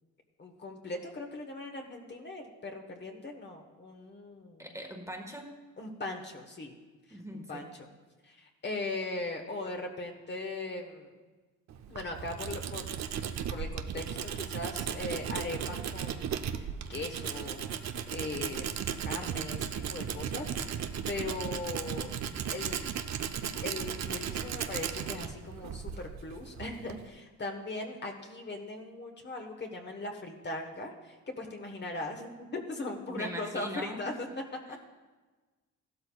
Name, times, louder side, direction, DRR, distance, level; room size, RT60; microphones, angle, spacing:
voice 1, 0.4-4.6 5.8-6.7 7.1-7.9 8.2-11.1 11.9-13.0 13.5-17.7 18.1-22.2 22.5-22.9 23.6-34.3 34.7-34.8, left 2 dB, 35° left, 2 dB, 1.3 m, -39 dB
voice 2, 4.6-5.5 7.1-7.7 33.1-34.1 34.6-34.8, equal, 10° right, 2 dB, 1.4 m, -41 dB
Tools, 11.7-27.1, right 8 dB, 60° right, 0.7 m, -36 dB
15.0 x 12.5 x 2.3 m, 1.3 s
cardioid pair, 100°, 31 cm